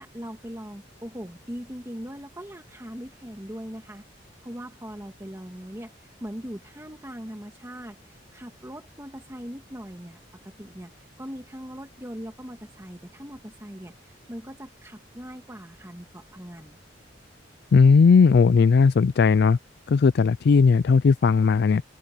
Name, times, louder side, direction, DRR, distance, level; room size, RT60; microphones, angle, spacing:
voice 1, 0.0-16.8, equal, 15° right, 1.9 m, -40 dB
voice 2, 17.7-19.6 19.9-21.8, left 5 dB, 60° left, 0.4 m, -17 dB
open air
head